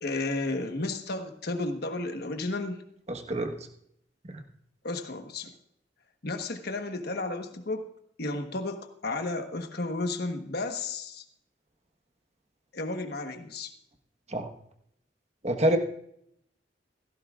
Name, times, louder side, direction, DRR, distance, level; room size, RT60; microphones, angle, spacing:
voice 1, 0.0-2.8 4.8-5.5 6.2-7.9 8.2-11.2 12.7-13.7, left 2 dB, 55° left, 6 dB, 1.3 m, -33 dB
voice 2, 3.1-3.5 4.2-4.4 14.3-14.5 15.4-15.8, right 1 dB, 35° right, 5 dB, 1.3 m, -27 dB
17.0 x 15.0 x 2.5 m, 0.71 s
head